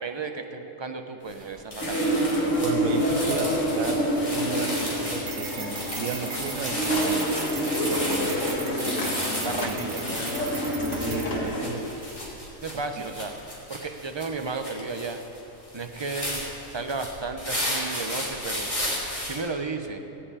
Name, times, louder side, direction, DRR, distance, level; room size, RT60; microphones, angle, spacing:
voice 1, 0.0-2.3 9.4-10.0 12.6-13.3 13.7-15.2 15.7-18.7 19.2-20.0, right 4 dB, 30° right, 6 dB, 0.5 m, -33 dB
sound 1, 1.3-1.4 1.7-19.4, left 1 dB, 25° left, 2.8 m, -34 dB
sound 2, 1.8-11.7, equal, 60° left, 2.0 m, -27 dB
voice 2, 2.6-4.0 4.3-4.8 5.1-7.3 7.8-8.4 9.6-9.8 11.0-11.9 13.0-13.1, right 6 dB, 75° right, 4 dB, 1.1 m, -34 dB
sound 3, 5.1-11.5, right 5 dB, 50° right, 1.2 m, -39 dB
17.0 x 5.7 x 8.5 m, 2.8 s
omnidirectional pair, 1.5 m